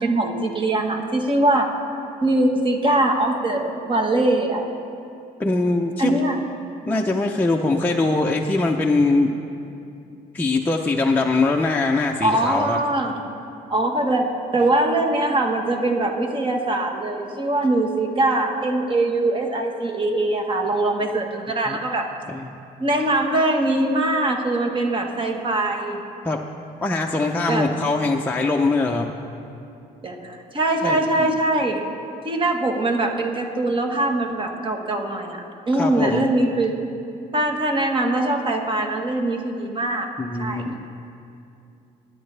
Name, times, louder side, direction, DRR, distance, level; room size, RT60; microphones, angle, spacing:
voice 1, 0.0-1.7 2.2-4.7 6.0-6.4 12.2-13.1 13.7-22.1 22.8-26.0 27.5-27.7 30.0-31.8 32.2-36.8 37.3-40.1 40.4-40.8, right 2 dB, 30° right, 3 dB, 1.4 m, -22 dB
voice 2, 5.4-6.1 6.9-9.4 10.3-12.8 21.7-21.8 22.3-22.5 26.2-26.4 26.8-29.1 30.8-31.3 35.8-36.3 40.2-40.9, left 3 dB, 10° left, 0 dB, 0.6 m, -22 dB
21.0 x 10.0 x 3.4 m, 2.6 s
cardioid pair, 110°, 17 cm